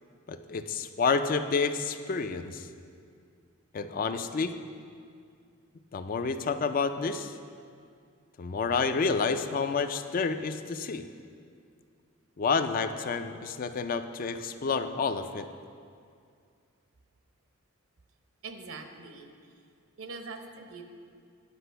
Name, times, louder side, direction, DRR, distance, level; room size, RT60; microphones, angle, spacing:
voice 1, 0.3-2.7 3.7-4.6 5.9-7.3 8.4-11.0 12.4-15.5, left 4 dB, 40° left, 9 dB, 0.4 m, -29 dB
voice 2, 18.4-19.3 20.0-20.8, right 4 dB, 75° right, 5 dB, 0.8 m, -42 dB
9.9 x 5.9 x 5.6 m, 2.3 s
head